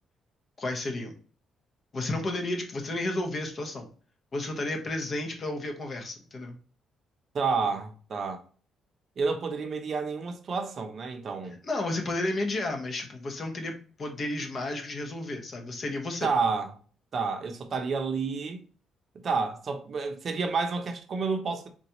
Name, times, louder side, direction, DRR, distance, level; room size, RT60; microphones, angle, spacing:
voice 1, 0.6-1.1 1.9-3.9 4.3-6.6 11.6-16.3, left 2 dB, 45° left, 0.8 m, -32 dB
voice 2, 7.3-8.4 9.2-11.6 16.2-16.7 17.1-18.6 19.2-21.7, right 4 dB, 50° right, 0.6 m, -30 dB
3.9 x 2.3 x 2.9 m
cardioid pair, 90°, 0 cm